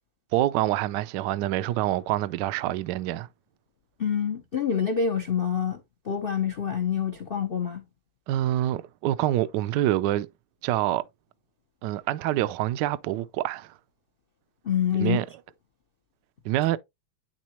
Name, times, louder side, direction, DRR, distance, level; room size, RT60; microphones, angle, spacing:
voice 1, 0.3-3.3 8.3-10.3 10.6-11.0 11.8-13.7 14.9-15.3 16.4-16.8, right 14 dB, 75° right, 1.0 m, -26 dB
voice 2, 4.0-5.8 6.0-7.8 14.6-15.2, left 7 dB, 70° left, 0.5 m, -26 dB
10.5 x 3.8 x 2.9 m
omnidirectional pair, 2.3 m